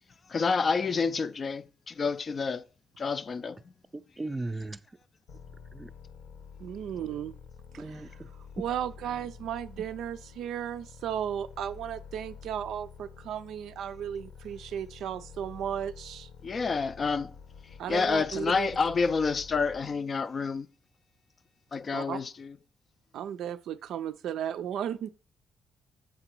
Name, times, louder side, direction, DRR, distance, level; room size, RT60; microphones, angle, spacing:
voice 1, 0.3-2.6 3.0-3.6 16.4-17.3 17.9-20.7 21.7-22.5, left 5 dB, 40° left, 0.4 m, -28 dB
voice 2, 3.9-4.8 5.7-5.9 7.8-8.3, right 2 dB, 20° right, 0.5 m, -37 dB
sound 1, 5.3-20.0, left 6 dB, 75° left, 0.9 m, -49 dB
voice 3, 6.6-7.3 7.7-8.0 8.6-16.3 17.8-18.7 21.9-22.2 23.1-25.1, right 9 dB, 75° right, 0.4 m, -35 dB
7.6 x 3.9 x 4.5 m
cardioid pair, 90°, 0 cm